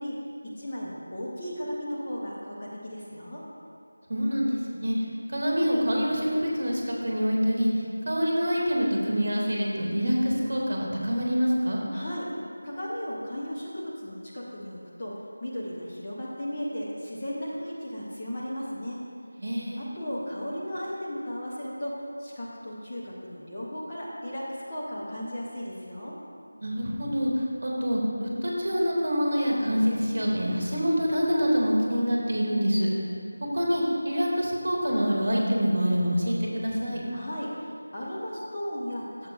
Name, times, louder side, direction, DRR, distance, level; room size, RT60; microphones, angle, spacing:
voice 1, 0.0-3.4 11.9-12.3 12.6-19.0 19.8-26.2 37.1-39.3, equal, 15° left, -8 dB, 0.6 m, -35 dB
voice 2, 4.1-5.0 5.3-7.7 8.0-11.8 19.4-19.9 26.6-32.9 33.5-37.0, equal, 45° right, -3 dB, 1.5 m, -26 dB
13.0 x 7.2 x 2.4 m, 2.5 s
figure-of-eight pair, 180°, 0 cm